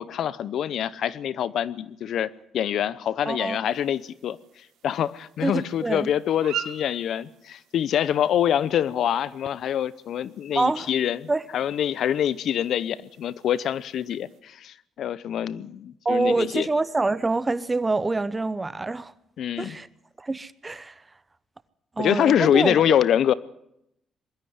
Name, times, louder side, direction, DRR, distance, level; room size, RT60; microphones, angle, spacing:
voice 1, 0.0-4.4 4.8-16.7 19.4-19.8 22.0-23.3, left 10 dB, 70° left, 0.8 m, -25 dB
voice 2, 3.3-3.6 5.4-6.1 10.5-10.9 11.3-11.4 16.0-19.1 19.6-19.9 20.2-21.0 22.0-22.7, right 3 dB, 20° right, 0.9 m, -26 dB
sound 1, 3.6-14.4, right 9 dB, 85° right, 3.8 m, -44 dB
21.5 x 13.5 x 9.5 m
cardioid pair, 90°, 0 cm